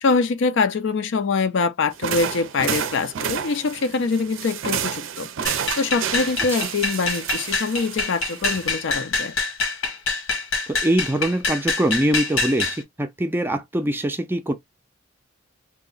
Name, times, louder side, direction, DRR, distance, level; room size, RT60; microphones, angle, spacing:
voice 1, 0.0-9.3, left 4 dB, 60° left, 0.4 m, -24 dB
sound 1, 1.9-8.9, right 8 dB, 75° right, 0.5 m, -30 dB
sound 2, 5.4-12.8, left 3 dB, 80° left, 1.2 m, -26 dB
voice 2, 10.7-14.5, right 1 dB, 10° right, 0.4 m, -23 dB
2.7 x 2.1 x 3.8 m
head